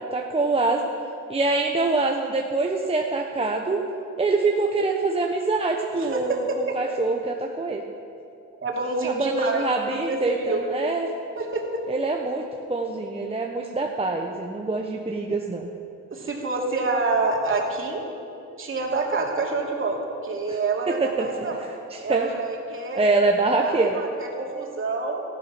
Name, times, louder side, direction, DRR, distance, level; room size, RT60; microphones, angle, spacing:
voice 1, 0.1-0.9 1.3-3.8 4.2-7.8 9.0-11.1 11.9-15.7 20.9-21.3 21.9-22.3 23.0-24.0, right 3 dB, 20° right, 1 dB, 1.0 m, -25 dB
voice 2, 6.0-6.8 8.6-10.6 11.4-11.8 16.1-18.0 18.6-21.6 22.0-23.0 23.6-25.2, right 3 dB, 45° right, -1 dB, 2.8 m, -27 dB
15.5 x 11.5 x 6.0 m, 2.6 s
cardioid pair, 90°, 30 cm